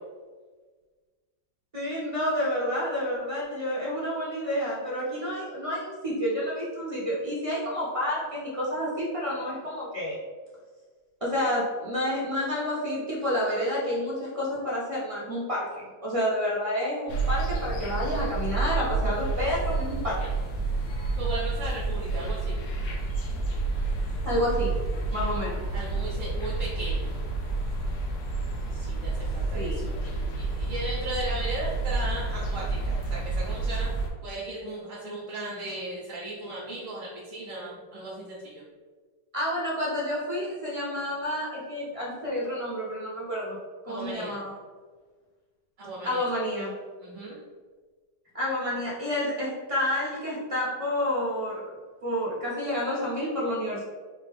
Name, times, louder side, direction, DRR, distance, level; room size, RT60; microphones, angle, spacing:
voice 1, 1.7-10.2 11.2-20.2 24.2-24.7 25.1-25.6 29.5-29.8 39.3-43.6 43.8-44.5 46.0-46.7 48.3-51.6 52.0-53.8, left 1 dB, 25° right, -6 dB, 0.8 m, -29 dB
sound 1, 17.1-34.1, right 3 dB, 90° left, 1.4 m, -29 dB
voice 2, 21.2-23.0 25.7-27.1 28.7-33.9 34.2-38.6 43.9-44.4 45.8-46.2 47.0-47.4, right 2 dB, 55° right, -6 dB, 1.1 m, -37 dB
4.3 x 2.9 x 3.5 m, 1.4 s
omnidirectional pair, 1.8 m